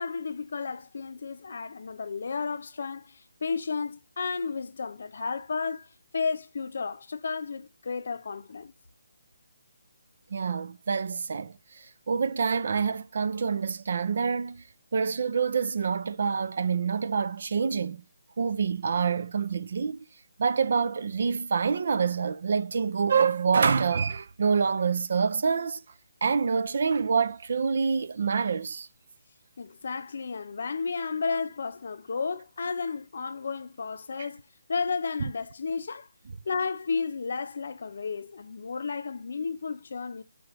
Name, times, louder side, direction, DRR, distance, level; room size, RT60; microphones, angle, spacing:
voice 1, 0.0-5.9 6.1-8.7 29.6-34.4 34.7-36.1 36.5-40.2, left 5 dB, 55° left, 0.7 m, -32 dB
voice 2, 10.3-14.6 14.9-18.0 18.4-20.1 20.4-25.8 26.2-28.9, right 5 dB, 50° right, 0.4 m, -26 dB
7.4 x 4.9 x 3.1 m
hypercardioid pair, 170°, 0 cm